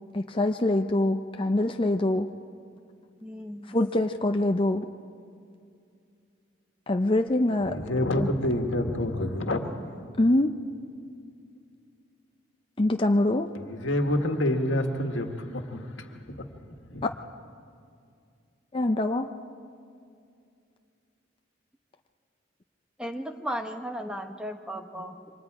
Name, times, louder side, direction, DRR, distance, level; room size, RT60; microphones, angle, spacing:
voice 1, 0.1-2.3 3.7-4.9 6.9-7.8 8.2-8.3 10.2-10.5 12.8-13.5 18.7-19.3, left 1 dB, 25° left, 5 dB, 0.5 m, -24 dB
voice 2, 3.2-3.7 23.0-25.3, equal, 5° right, 5 dB, 0.9 m, -35 dB
voice 3, 7.5-9.8 13.5-15.8 16.3-16.4 16.9-17.0, left 1 dB, 90° left, 4 dB, 1.7 m, -27 dB
28.0 x 24.5 x 4.9 m, 2.4 s
head